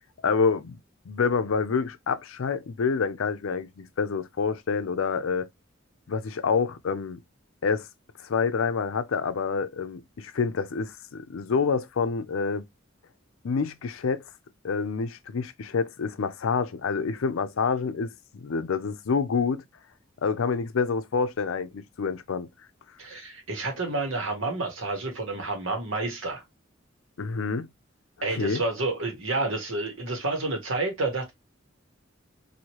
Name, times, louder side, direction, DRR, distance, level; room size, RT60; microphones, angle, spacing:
voice 1, 0.2-0.8 1.1-5.5 6.1-7.2 7.6-7.9 8.2-12.6 13.4-14.2 14.6-19.6 20.2-22.5 27.2-27.7 28.3-28.6, left 5 dB, 85° left, 0.5 m, -27 dB
voice 2, 23.0-26.4 28.2-31.3, right 2 dB, 80° right, 1.4 m, -29 dB
2.9 x 2.7 x 3.0 m
head